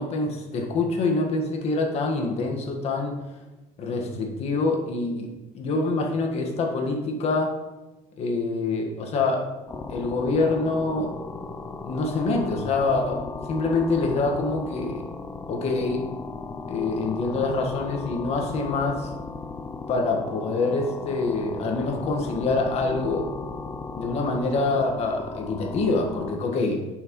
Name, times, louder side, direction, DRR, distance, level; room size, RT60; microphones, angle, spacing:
voice 1, 0.0-3.2 3.8-5.3 5.5-7.5 8.2-9.4 9.9-11.1 11.8-13.2 13.5-15.0 15.5-16.1 16.7-19.1 19.9-23.3 23.9-26.8, left 3 dB, 50° left, 2 dB, 1.5 m, -25 dB
sound 1, 9.7-26.4, left 4 dB, 20° left, 0.5 m, -36 dB
10.5 x 6.0 x 3.1 m, 1.1 s
cardioid pair, 135°, 14 cm